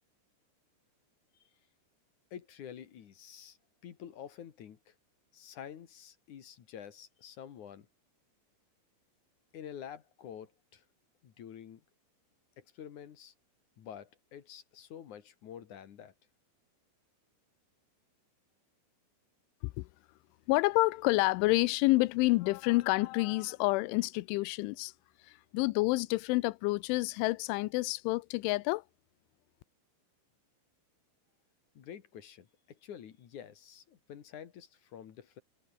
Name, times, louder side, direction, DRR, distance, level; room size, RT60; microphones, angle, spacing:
voice 1, 2.3-3.6 3.8-4.9 5.3-7.9 9.5-10.8 11.2-11.8 12.6-13.3 13.8-16.1 31.7-35.4, left 9 dB, 55° left, 2.6 m, -48 dB
voice 2, 20.5-24.9 25.2-28.8, left 22 dB, 90° left, 3.1 m, -28 dB
omnidirectional pair, 5.4 m